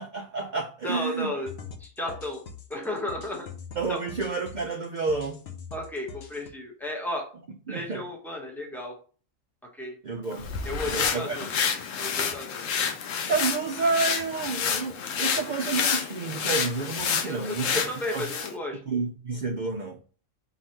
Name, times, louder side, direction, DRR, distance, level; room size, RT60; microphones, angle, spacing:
voice 1, 0.0-1.3 3.8-5.4 7.7-8.0 10.0-10.5 10.9-11.4 13.3-17.8 18.1-18.2 18.9-20.0, right 4 dB, 55° right, 0.5 m, -30 dB
voice 2, 0.8-1.5 1.8-2.4 2.7-3.5 3.9-4.0 5.7-7.3 7.7-8.9 9.7-9.9 10.6-11.5 12.0-12.7 17.2-18.8, left 1 dB, ahead, 0.9 m, -33 dB
sound 1, 1.5-6.5, left 5 dB, 60° left, 0.9 m, -43 dB
sound 2, 10.3-18.5, left 6 dB, 85° left, 1.0 m, -29 dB
3.8 x 2.9 x 4.3 m
omnidirectional pair, 1.3 m